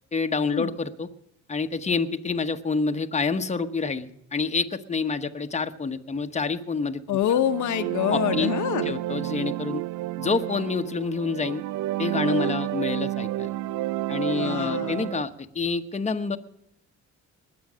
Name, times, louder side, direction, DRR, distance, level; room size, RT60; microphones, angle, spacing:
voice 1, 0.1-1.1 1.5-7.0 8.1-8.5 8.8-9.8 10.2-11.6 12.0-13.5 14.1-16.4, left 4 dB, 25° left, 7 dB, 1.1 m, -27 dB
voice 2, 7.1-8.9 12.2-12.6 14.4-15.1, left 10 dB, 75° left, 8 dB, 1.0 m, -26 dB
sound 1, 7.3-15.2, right 16 dB, 80° right, 0.5 m, -30 dB
20.5 x 8.0 x 6.2 m, 0.77 s
cardioid pair, 90°, 30 cm